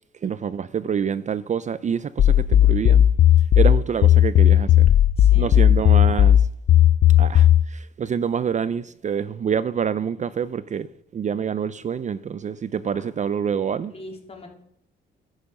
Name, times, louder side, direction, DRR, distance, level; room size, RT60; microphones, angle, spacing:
voice 1, 0.2-3.1 3.6-4.9 5.3-6.4 7.2-10.9 11.1-13.9, right 7 dB, 35° right, 0.5 m, -26 dB
sound 1, 2.2-7.7, left 11 dB, 50° left, 0.5 m, -15 dB
voice 2, 5.2-6.3 12.9-13.1 13.9-14.5, left 2 dB, 30° left, 3.6 m, -42 dB
11.5 x 9.2 x 5.3 m
cardioid pair, 90°, 20 cm